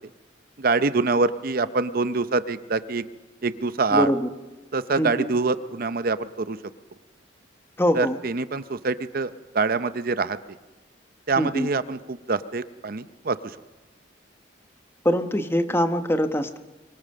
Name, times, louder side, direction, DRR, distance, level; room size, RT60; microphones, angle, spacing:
voice 1, 0.6-3.1 3.4-4.1 4.7-6.6 7.9-10.4 11.3-13.6, right 3 dB, 50° right, 13 dB, 0.7 m, -25 dB
voice 2, 3.9-4.3 5.0-5.3 7.8-8.2 11.4-11.7 15.0-16.6, equal, 15° left, 8 dB, 1.1 m, -23 dB
24.0 x 24.0 x 6.5 m, 1.1 s
head